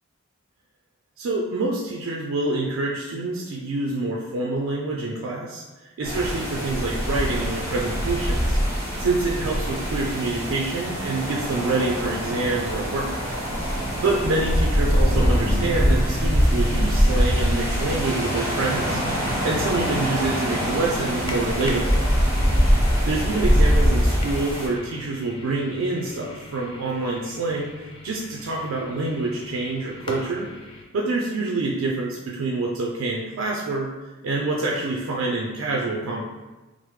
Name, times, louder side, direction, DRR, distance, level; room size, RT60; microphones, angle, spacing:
voice 1, 1.2-5.6 6.0-8.6 9.0-13.1 14.0-19.0 19.4-22.0 23.1-27.7 28.0-30.5 30.9-33.9 34.2-36.2, right 2 dB, 80° right, -2 dB, 0.4 m, -26 dB
sound 1, 6.0-24.7, equal, 10° right, 0.8 m, -23 dB
sound 2, 15.0-19.8, equal, 55° left, 0.7 m, -33 dB
sound 3, 15.7-30.8, left 2 dB, 25° left, 0.3 m, -41 dB
3.1 x 2.0 x 3.1 m, 1.1 s
head